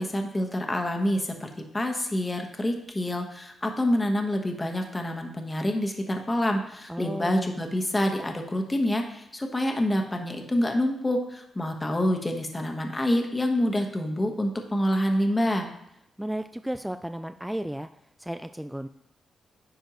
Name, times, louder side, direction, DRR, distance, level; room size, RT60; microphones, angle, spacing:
voice 1, 0.0-15.7, left 1 dB, 20° left, 3 dB, 1.3 m, -27 dB
voice 2, 6.9-7.6 16.2-17.9 18.2-18.9, right 1 dB, 5° right, 9 dB, 0.3 m, -33 dB
10.0 x 4.4 x 3.1 m, 0.79 s
cardioid pair, 65°, 0 cm